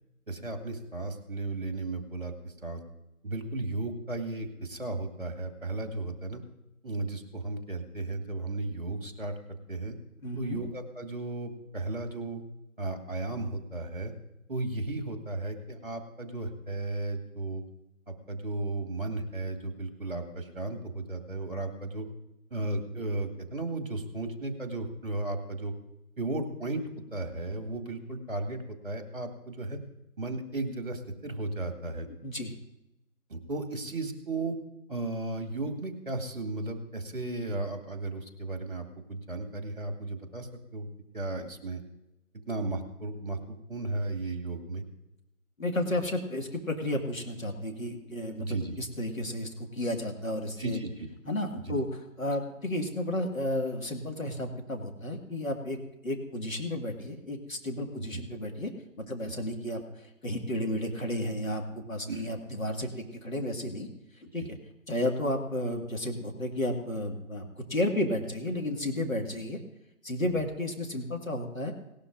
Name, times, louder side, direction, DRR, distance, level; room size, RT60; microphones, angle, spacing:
voice 1, 0.3-2.8 3.2-6.4 6.8-9.3 9.7-9.9 10.4-12.4 12.8-14.1 14.5-17.6 18.1-22.1 22.5-25.7 26.2-26.8 27.1-29.8 30.2-32.1 33.3-34.6 34.9-40.9 41.1-41.8 42.5-44.8 48.4-48.8 50.6-51.1 51.6-51.8 58.0-58.2 62.1-62.3 64.4-64.5 70.2-70.4, right 2 dB, 40° right, 5 dB, 2.0 m, -35 dB
voice 2, 10.2-10.6 32.2-32.5 45.6-48.5 48.8-50.8 51.3-55.8 56.0-58.7 59.0-63.9 64.2-64.6 64.9-69.6 70.0-71.7, left 1 dB, 70° left, 2 dB, 2.0 m, -32 dB
18.5 x 12.0 x 2.6 m, 0.90 s
figure-of-eight pair, 170°, 43 cm